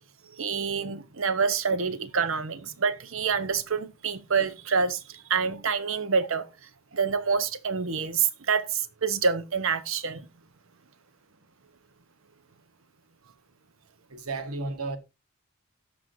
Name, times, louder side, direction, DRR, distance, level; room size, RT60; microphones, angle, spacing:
voice 1, 0.4-6.5 6.9-10.3, right 5 dB, 65° right, 0.9 m, -27 dB
voice 2, 14.1-15.0, right 3 dB, 90° right, 1.6 m, -33 dB
17.5 x 6.2 x 2.7 m
head